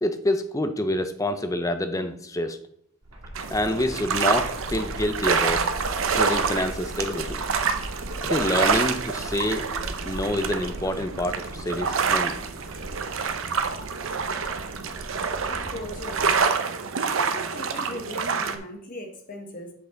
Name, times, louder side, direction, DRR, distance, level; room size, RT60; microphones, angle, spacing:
voice 1, 0.0-2.6 3.5-5.7 6.1-7.4 8.2-9.7 10.1-12.4, left 1 dB, 15° left, 9 dB, 0.5 m, -27 dB
sound 1, 3.0-16.4, equal, 90° right, 1.9 m, -40 dB
sound 2, 3.3-18.6, right 5 dB, 65° right, 0.7 m, -27 dB
voice 2, 15.5-16.5 17.0-19.7, left 1 dB, 40° left, 3 dB, 1.3 m, -38 dB
7.9 x 5.4 x 3.8 m, 0.66 s
head